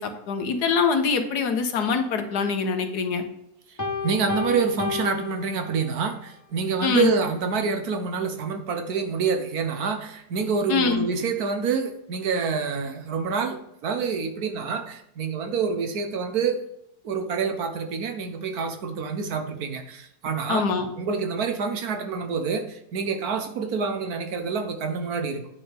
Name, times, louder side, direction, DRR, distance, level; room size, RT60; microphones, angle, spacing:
voice 1, 0.0-3.2 6.8-7.1 10.7-11.0 20.5-20.9, left 5 dB, 80° left, 6 dB, 1.6 m, -24 dB
Piano, 3.8-6.2, left 4 dB, 20° left, 0.5 m, -32 dB
voice 2, 4.0-13.6 13.8-16.6 17.0-20.7 21.0-25.5, right 5 dB, 70° right, 6 dB, 1.4 m, -27 dB
9.1 x 6.4 x 3.4 m, 0.80 s
omnidirectional pair, 1.7 m